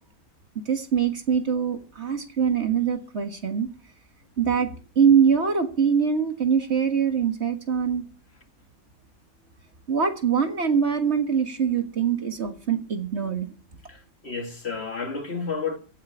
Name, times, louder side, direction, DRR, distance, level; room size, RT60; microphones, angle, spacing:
voice 1, 0.7-3.7 4.4-8.1 9.9-13.5, right 7 dB, 50° right, 1.8 m, -23 dB
voice 2, 13.9-15.8, left 5 dB, 45° left, 2.4 m, -31 dB
16.0 x 5.6 x 10.0 m
omnidirectional pair, 1.5 m